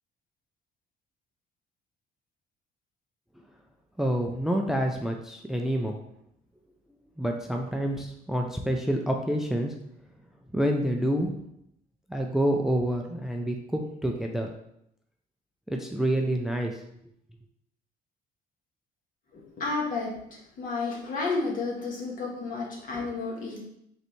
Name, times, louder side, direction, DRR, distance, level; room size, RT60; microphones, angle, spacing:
voice 1, 4.0-6.0 7.2-9.7 10.5-11.4 12.1-14.5 15.7-16.8, right 1 dB, ahead, 2 dB, 0.4 m, -27 dB
voice 2, 19.3-20.1 20.6-23.6, left 3 dB, 55° left, -3 dB, 1.6 m, -31 dB
5.0 x 3.3 x 3.1 m, 0.76 s
cardioid pair, 110°, 17 cm